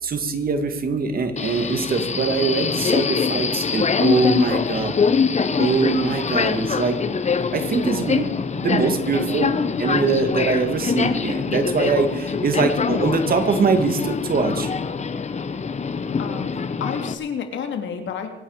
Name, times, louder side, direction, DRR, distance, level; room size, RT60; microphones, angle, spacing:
voice 1, 0.0-5.0 5.6-7.0 7.5-8.3 8.6-14.7, right 4 dB, 50° right, 7 dB, 2.3 m, -22 dB
Subway metro underground, 1.4-17.1, left 5 dB, 35° left, 1.2 m, -24 dB
voice 2, 16.2-18.3, left 7 dB, 70° left, 5 dB, 2.8 m, -30 dB
25.0 x 9.3 x 5.1 m, 1.0 s
cardioid pair, 90°, 20 cm